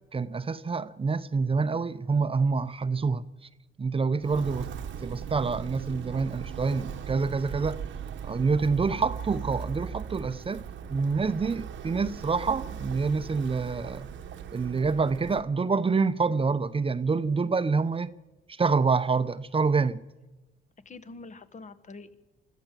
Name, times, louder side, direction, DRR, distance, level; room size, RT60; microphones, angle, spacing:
voice 1, 0.1-3.2 3.8-4.7 5.0-7.8 8.2-10.6 10.9-14.1 14.5-18.1 18.5-20.0, right 4 dB, 30° right, 0.8 m, -27 dB
Walk footsteps, 4.2-15.5, right 8 dB, 70° right, 1.2 m, -38 dB
voice 2, 20.8-22.2, left 3 dB, 35° left, 1.4 m, -46 dB
25.0 x 13.5 x 7.6 m
cardioid pair, 90°, 20 cm